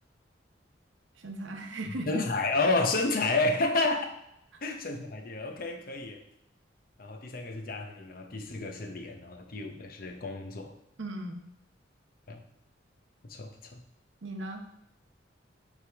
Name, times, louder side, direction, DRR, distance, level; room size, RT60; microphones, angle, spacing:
voice 1, 1.1-2.3 11.0-11.4 14.2-14.6, right 1 dB, 85° right, 4 dB, 0.8 m, -37 dB
voice 2, 2.1-4.1 4.6-6.2 7.0-10.8 12.3-12.4 13.3-13.8, left 2 dB, 50° left, 4 dB, 0.7 m, -30 dB
9.2 x 3.5 x 3.5 m, 0.80 s
head